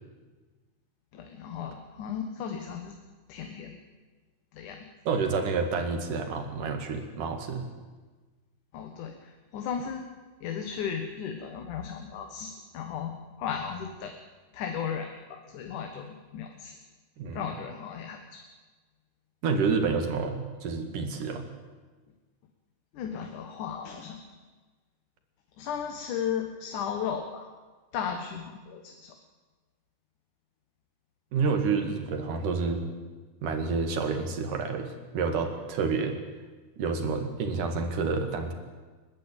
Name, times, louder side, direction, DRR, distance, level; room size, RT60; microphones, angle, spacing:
voice 1, 1.1-3.0 3.3-3.8 4.5-4.9 8.7-10.0 10.4-14.1 14.5-16.8 17.3-18.4 22.9-24.2 25.6-27.5 27.9-29.1, left 7 dB, 80° left, 4 dB, 2.9 m, -35 dB
voice 2, 5.1-7.6 17.2-17.5 19.4-21.4 31.3-32.8 33.4-36.2 36.8-38.5, right 4 dB, 85° right, 6 dB, 3.7 m, -29 dB
30.0 x 12.0 x 9.1 m, 1.3 s
omnidirectional pair, 3.6 m